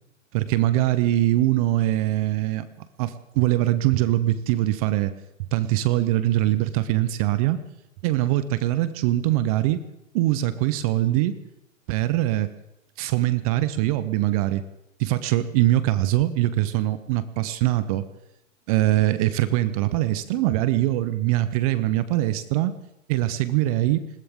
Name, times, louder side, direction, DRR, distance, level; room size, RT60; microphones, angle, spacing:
voice 1, 0.3-5.1 5.5-7.6 8.0-9.8 10.1-11.3 11.9-12.5 13.0-14.6 15.0-18.1 18.7-22.7 23.1-24.0, right 15 dB, 30° right, 14 dB, 0.6 m, -22 dB
20.5 x 18.0 x 3.6 m, 0.88 s
hypercardioid pair, 135°, 40 cm